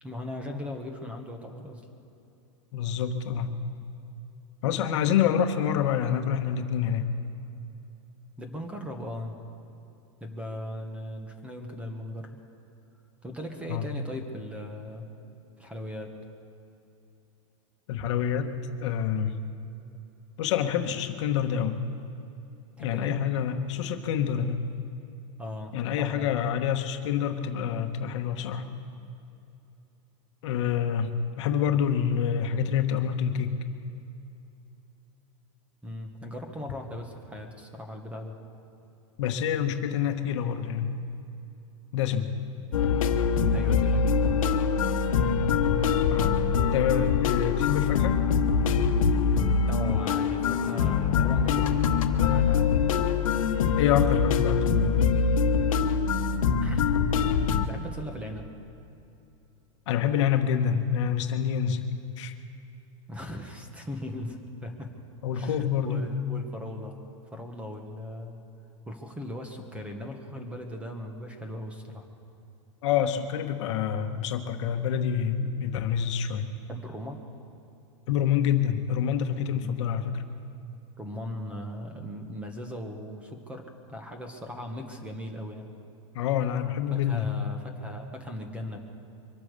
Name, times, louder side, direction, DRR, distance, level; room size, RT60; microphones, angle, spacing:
voice 1, 0.0-1.8 8.4-9.4 10.2-12.4 13.2-15.1 15.6-16.1 22.8-23.2 25.4-26.3 35.8-38.3 43.5-44.5 49.7-52.7 56.6-57.0 57.7-58.5 63.1-64.9 65.3-67.0 67.3-68.4 68.8-72.0 76.7-77.2 79.5-79.9 81.0-85.7 86.9-88.8, left 1 dB, 5° right, 4 dB, 1.4 m, -38 dB
voice 2, 2.7-3.5 4.6-7.1 13.7-13.8 17.9-18.5 18.8-19.3 20.4-21.8 22.8-24.6 25.7-28.7 30.4-31.1 31.4-33.5 39.2-41.0 41.9-42.3 46.1-46.4 46.7-48.2 53.8-55.0 59.9-61.8 62.2-62.3 65.2-66.1 72.8-76.5 78.1-80.2 86.1-87.3, left 8 dB, 65° left, 7 dB, 1.2 m, -27 dB
sound 1, 42.7-57.7, left 6 dB, 90° left, 1.2 m, -24 dB
24.0 x 8.7 x 6.7 m, 2.8 s
supercardioid pair, 155°, 17 cm